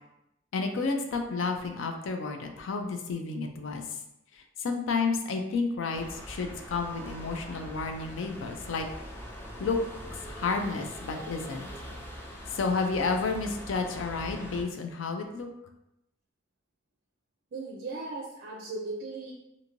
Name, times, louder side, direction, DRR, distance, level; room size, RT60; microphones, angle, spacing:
voice 1, 0.5-4.0 4.3-8.9 9.6-9.8 10.2-11.7 12.5-15.5, left 4 dB, 70° left, 5 dB, 0.4 m, -31 dB
sound 1, 5.9-14.6, equal, 10° left, 0.5 m, -42 dB
voice 2, 17.5-19.3, right 3 dB, 50° right, -1 dB, 0.4 m, -37 dB
2.6 x 2.5 x 2.9 m, 0.85 s
head